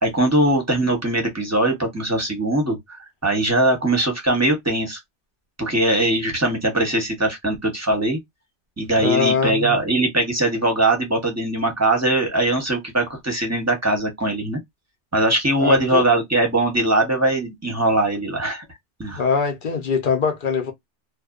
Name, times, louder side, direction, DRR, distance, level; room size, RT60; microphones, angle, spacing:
voice 1, 0.0-2.8 3.2-5.0 5.6-8.2 8.8-14.6 15.1-18.6 19.0-19.2, right 1 dB, 15° right, 0.8 m, -21 dB
voice 2, 9.0-9.8 15.6-16.0 19.1-20.7, left 5 dB, 55° left, 0.7 m, -22 dB
2.6 x 2.2 x 2.3 m
omnidirectional pair, 1.3 m